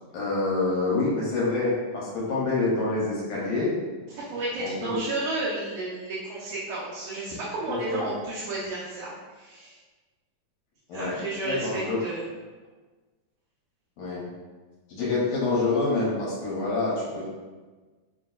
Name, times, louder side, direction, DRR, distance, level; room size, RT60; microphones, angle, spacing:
voice 1, 0.1-3.8 4.6-5.0 7.7-8.1 10.9-11.2 11.5-12.0 14.0-14.3 14.9-17.3, left 3 dB, 70° left, -6 dB, 1.8 m, -27 dB
voice 2, 4.3-9.8 10.9-12.3, right 2 dB, 80° right, -7 dB, 2.0 m, -32 dB
5.9 x 2.6 x 2.3 m, 1.3 s
omnidirectional pair, 3.3 m